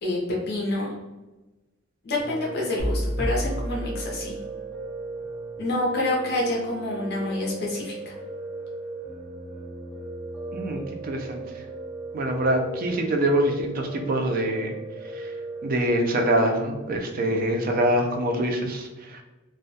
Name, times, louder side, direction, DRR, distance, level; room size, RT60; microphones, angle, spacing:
voice 1, 0.0-0.9 2.0-4.4 5.6-8.1, left 1 dB, 55° left, -3 dB, 0.6 m, -27 dB
Piano, 2.2-15.9, right 3 dB, 10° right, 1.2 m, -37 dB
sound 1, 2.8-4.9, equal, 75° right, 0.7 m, -30 dB
voice 2, 10.5-11.4 12.1-14.7 15.2-15.3 15.6-18.9, right 1 dB, 45° right, 3 dB, 0.4 m, -24 dB
2.2 x 2.1 x 2.6 m, 1.1 s
head